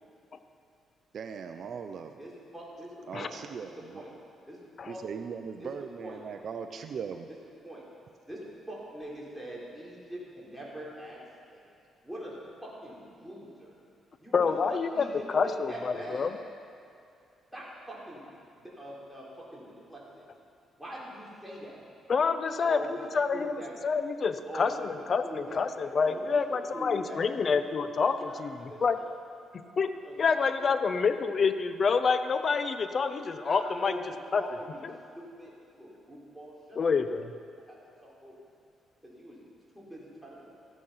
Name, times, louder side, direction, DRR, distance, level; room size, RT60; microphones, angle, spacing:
voice 1, 1.1-2.2 3.1-4.0 4.9-7.3, right 6 dB, 55° right, 6 dB, 0.6 m, -39 dB
voice 2, 2.2-3.3 3.6-4.1 4.5-4.6 4.9-5.0 5.6-5.7 6.0-6.2 7.6-7.8 8.3-8.4 8.7-11.2 11.5-11.7 12.0-12.3 12.6-13.7 14.2-16.3 17.5-18.2 18.6-20.3 20.8-21.8 22.6-23.0 23.3-23.9 24.4-25.7 26.0-27.2 28.2-29.1 30.0-30.7 30.9-31.0 33.4-34.8 35.1-36.9 37.7-38.3 39.0-39.4 39.7-40.5, right 1 dB, 5° right, -5 dB, 3.7 m, -43 dB
voice 3, 14.3-16.3 22.1-22.8 23.1-23.5 23.8-28.5 28.8-29.0 29.8-29.9 30.2-33.9 34.3-34.4 36.8-37.3, left 5 dB, 45° left, 10 dB, 0.7 m, -27 dB
13.5 x 9.1 x 5.7 m, 2.6 s
cardioid pair, 90°, 0 cm